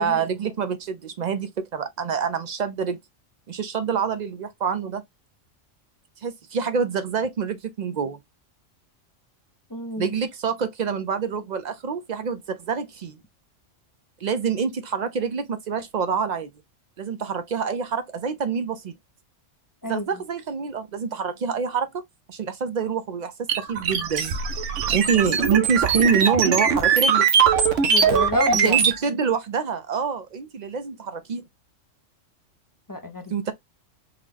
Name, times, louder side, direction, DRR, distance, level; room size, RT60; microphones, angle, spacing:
voice 1, 0.0-3.0 3.5-5.0 6.2-8.2 10.0-13.2 14.2-16.5 17.0-18.9 19.9-22.0 22.3-24.4 24.9-27.3 28.5-31.4 33.3-33.5, right 6 dB, 55° right, 0.5 m, -26 dB
voice 2, 9.7-10.1 19.8-20.1 25.4-25.6 27.9-28.8 32.9-33.4, left 1 dB, 30° left, 0.4 m, -29 dB
sound 1, 23.5-29.0, right 6 dB, 80° right, 1.0 m, -21 dB
3.8 x 2.2 x 3.3 m
omnidirectional pair, 1.3 m